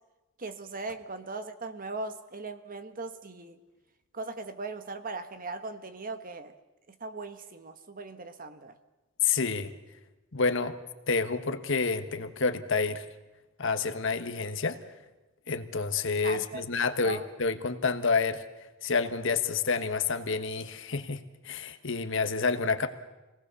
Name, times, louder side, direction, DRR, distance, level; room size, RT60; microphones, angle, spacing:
voice 1, 0.4-3.6 4.1-6.5 7.0-8.7 16.2-16.7 17.0-17.2, right 3 dB, 40° right, 9 dB, 1.3 m, -39 dB
voice 2, 9.2-9.7 10.3-10.8 11.1-13.0 13.6-14.8 15.5-18.4 18.8-22.9, left 4 dB, 60° left, 8 dB, 1.3 m, -29 dB
26.0 x 18.5 x 6.9 m, 1.1 s
head